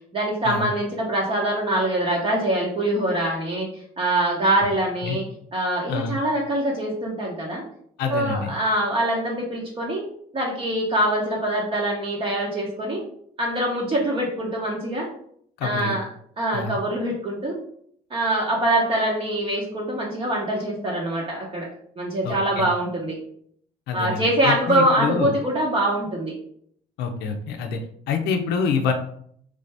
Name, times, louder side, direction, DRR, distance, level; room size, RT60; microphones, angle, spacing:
voice 1, 0.1-3.7 4.0-5.2 5.5-7.6 8.1-10.0 10.3-13.0 13.4-15.1 15.6-16.1 16.4-17.6 18.1-21.7 22.0-23.2 23.9-26.3, right 1 dB, 30° right, -2 dB, 0.8 m, -24 dB
voice 2, 8.0-8.5 15.6-16.0 16.5-16.8 22.2-22.7 23.9-25.3 27.0-27.8 28.1-28.9, left 5 dB, 80° left, 4 dB, 0.5 m, -26 dB
3.3 x 2.6 x 3.3 m, 0.65 s
cardioid pair, 110°, 17 cm